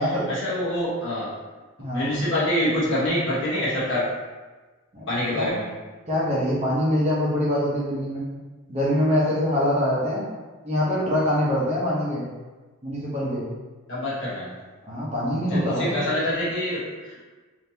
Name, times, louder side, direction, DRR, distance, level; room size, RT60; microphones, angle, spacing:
voice 1, 0.0-1.3 1.9-4.1 5.1-5.7 13.9-14.6 15.4-17.2, left 1 dB, 60° left, -8 dB, 1.2 m, -26 dB
voice 2, 6.1-8.3 8.7-10.2 10.6-12.3 12.8-13.4 14.9-16.1, equal, 30° right, -7 dB, 0.8 m, -24 dB
3.5 x 2.8 x 2.8 m, 1.3 s
head